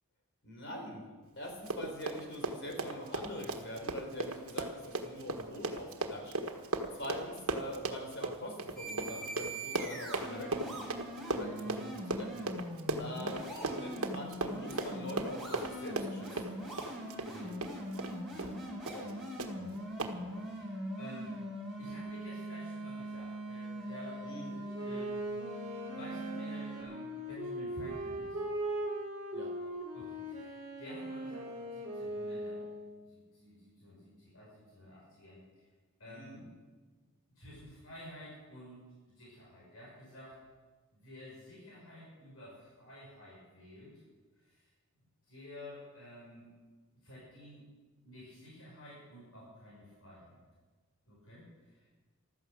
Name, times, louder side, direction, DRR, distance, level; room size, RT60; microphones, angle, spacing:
voice 1, 0.4-1.0 1.4-6.3 6.9-10.8 11.3-12.5 13.0-16.3 18.9-19.1 24.2-24.6 29.3-29.5 36.1-36.4, equal, 55° left, 2 dB, 4.3 m, -44 dB
Run, 1.5-18.1 18.4-18.6 18.9-19.1 19.4-19.5 20.0-20.1, right 2 dB, 75° right, 1.5 m, -37 dB
sound 1, 8.8-26.8, right 1 dB, ahead, 5.7 m, -42 dB
voice 2, 17.3-17.6 18.3-18.5 19.6-19.8 20.2-21.4 21.8-25.4 25.8-28.4 29.9-32.6 33.0-35.7 36.0-36.4 37.4-40.4 40.9-44.0 44.4-44.7 45.3-46.5 46.9-47.6 48.0-50.4 51.1-51.9, equal, 75° left, -5 dB, 5.6 m, -51 dB
Wind instrument woodwind instrument, 24.7-33.0, right 1 dB, 30° right, 3.2 m, -39 dB
15.5 x 13.0 x 6.4 m, 1.3 s
head